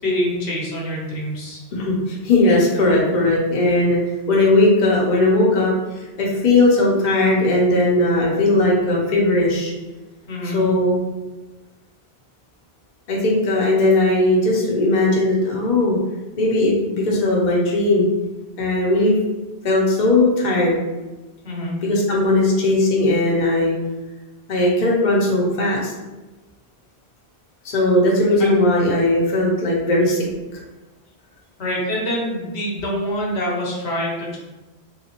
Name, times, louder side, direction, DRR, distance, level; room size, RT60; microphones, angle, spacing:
voice 1, 0.0-1.6 10.3-10.6 21.4-21.8 28.4-28.5 31.6-34.4, equal, 80° left, -4 dB, 1.1 m, -25 dB
voice 2, 1.7-4.0 4.3-9.7 10.5-11.0 13.1-16.0 16.4-18.1 18.6-19.1 19.6-20.8 21.8-23.7 24.5-25.9 27.6-30.2, left 2 dB, 50° left, -3 dB, 0.7 m, -18 dB
3.4 x 2.4 x 2.8 m, 1.1 s
omnidirectional pair, 1.1 m